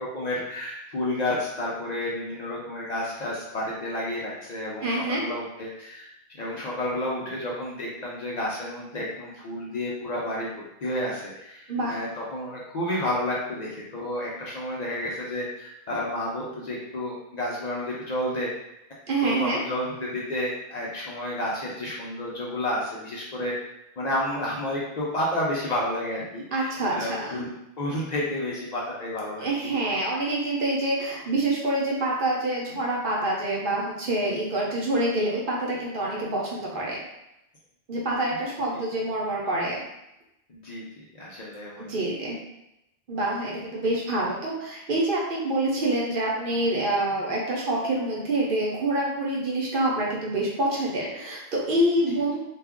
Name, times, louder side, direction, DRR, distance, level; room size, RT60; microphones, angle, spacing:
voice 1, 0.0-6.1 6.4-18.5 19.2-23.5 24.0-27.5 27.8-29.8 38.7-38.8 40.5-40.9 41.2-41.9 52.1-52.2, left 1 dB, 50° left, -5 dB, 0.6 m, -31 dB
voice 2, 4.8-5.2 11.7-12.0 19.1-19.6 26.5-27.5 29.4-37.0 37.9-39.8 41.8-42.3 43.1-52.4, right 1 dB, 60° right, -4 dB, 0.9 m, -26 dB
2.5 x 2.3 x 3.5 m, 0.85 s
omnidirectional pair, 1.0 m